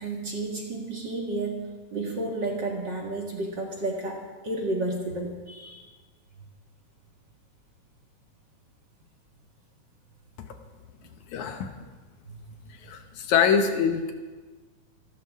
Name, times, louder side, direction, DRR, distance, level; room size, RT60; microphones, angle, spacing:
voice 1, 0.0-5.9 12.3-12.6, right 2 dB, 40° right, -1 dB, 2.0 m, -32 dB
voice 2, 11.3-11.7 12.8-14.1, left 7 dB, 70° left, 5 dB, 2.3 m, -24 dB
27.0 x 13.5 x 3.6 m, 1.3 s
omnidirectional pair, 3.7 m